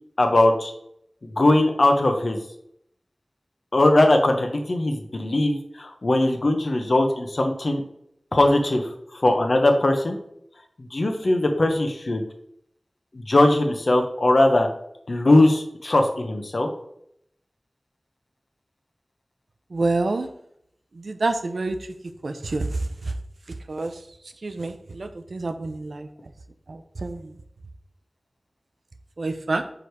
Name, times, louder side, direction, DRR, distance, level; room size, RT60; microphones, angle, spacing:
voice 1, 0.2-0.7 1.2-2.4 3.7-7.8 8.3-8.8 9.2-10.2 10.9-12.2 13.1-14.7 15.1-16.7, left 1 dB, 65° left, 4 dB, 0.9 m, -20 dB
voice 2, 19.7-20.3 20.9-21.9 22.2-23.1 23.7-24.0 24.4-26.1 26.7-27.4 29.2-29.6, right 2 dB, 85° right, 8 dB, 0.6 m, -28 dB
4.9 x 4.9 x 4.7 m, 0.73 s
wide cardioid pair, 60°, 0 cm